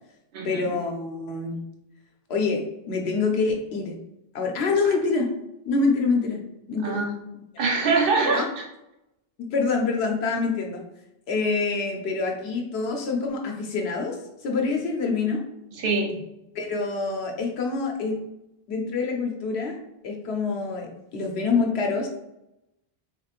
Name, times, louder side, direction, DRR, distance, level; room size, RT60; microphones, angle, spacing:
voice 1, 0.4-1.6 2.3-4.0 4.3-5.3 5.7-6.4 6.7-7.0 8.2-8.5 9.4-10.8 11.3-14.2 14.4-15.4 16.5-18.2 18.7-19.8 20.0-22.1, left 4 dB, 85° left, 1 dB, 0.9 m, -26 dB
voice 2, 6.8-7.1 7.6-8.6 15.7-16.2, right 4 dB, 65° right, 1 dB, 0.8 m, -24 dB
3.6 x 3.1 x 2.4 m, 0.88 s
omnidirectional pair, 1.0 m